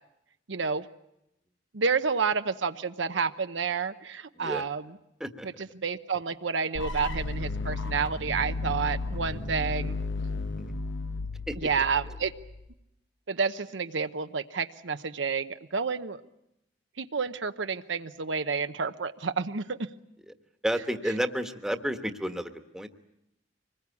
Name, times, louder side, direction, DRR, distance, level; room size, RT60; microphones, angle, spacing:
voice 1, 0.5-0.8 1.7-5.0 5.4-10.0 11.6-12.3 13.3-16.2 17.0-19.8, right 5 dB, 80° right, 9 dB, 0.9 m, -30 dB
sound 1, 6.7-12.7, left 3 dB, 85° left, 1.1 m, -33 dB
voice 2, 20.6-22.9, equal, 5° right, 6 dB, 1.3 m, -31 dB
25.0 x 20.5 x 8.4 m, 0.84 s
head